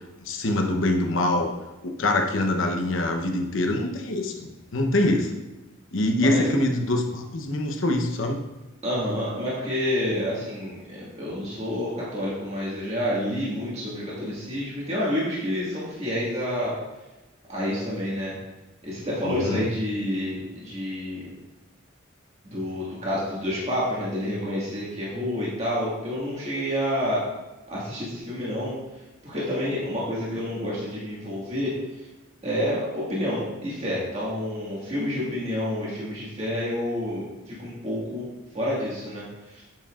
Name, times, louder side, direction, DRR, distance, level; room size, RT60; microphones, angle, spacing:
voice 1, 0.2-1.5 1.8-5.3 5.9-8.4 19.2-19.7, left 1 dB, 80° left, 3 dB, 0.9 m, -24 dB
voice 2, 8.8-16.7 17.5-18.3 18.8-21.3 22.4-27.2 27.7-28.7 29.2-31.7 32.4-38.3 38.5-39.2 39.5-39.6, left 1 dB, 35° right, -7 dB, 1.9 m, -29 dB
7.7 x 7.2 x 2.5 m, 1.0 s
head